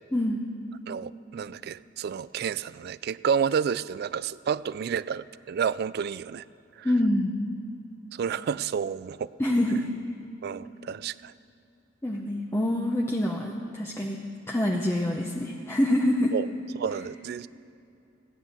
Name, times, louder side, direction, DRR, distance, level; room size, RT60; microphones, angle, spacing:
voice 1, 0.1-0.5 6.8-7.3 9.4-9.9 12.0-14.2 14.5-16.3, left 1 dB, 15° left, -1 dB, 0.8 m, -26 dB
voice 2, 0.9-6.4 6.8-6.9 8.1-9.3 10.4-11.3 16.3-16.5 16.8-17.5, right 7 dB, 55° right, 18 dB, 0.3 m, -30 dB
16.5 x 9.6 x 6.6 m, 2.6 s
head